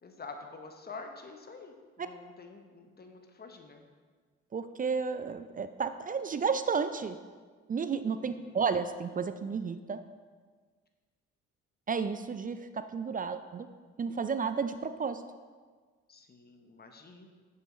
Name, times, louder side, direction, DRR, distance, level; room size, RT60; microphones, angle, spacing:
voice 1, 0.0-3.8 8.2-8.6 16.1-17.3, left 4 dB, 25° left, 4 dB, 1.0 m, -48 dB
voice 2, 4.5-7.2 7.7-10.0 11.9-13.7 14.0-15.2, right 5 dB, 25° right, 10 dB, 0.4 m, -32 dB
7.7 x 6.7 x 3.2 m, 1.5 s
hypercardioid pair, 45°, 36 cm